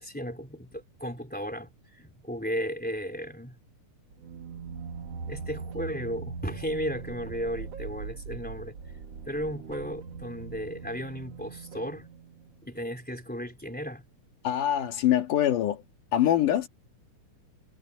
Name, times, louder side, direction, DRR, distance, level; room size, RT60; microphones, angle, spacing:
voice 1, 0.0-3.6 5.3-8.8 9.3-12.1 12.6-14.1, equal, 5° left, 3.4 m, -35 dB
sound 1, 4.1-12.7, right 5 dB, 55° right, 2.8 m, -41 dB
voice 2, 14.4-15.8 16.1-16.7, left 11 dB, 75° left, 3.2 m, -24 dB
omnidirectional pair, 3.7 m